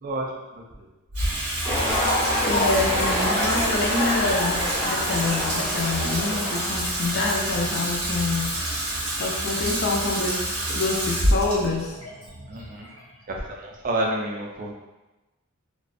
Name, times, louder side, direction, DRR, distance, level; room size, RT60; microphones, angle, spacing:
voice 1, 0.0-0.6 12.5-12.9 13.3-14.7, right 1 dB, 40° right, 0 dB, 0.4 m, -29 dB
Water tap faucet / Sink (filling or washing), 1.1-13.5, right 1 dB, 90° right, 0.8 m, -28 dB
sound 1, 1.6-6.8, left 1 dB, 10° left, 0.7 m, -26 dB
voice 2, 2.5-8.6 9.2-12.0, left 3 dB, 50° left, 0 dB, 0.4 m, -27 dB
2.4 x 2.2 x 2.4 m, 1.1 s
head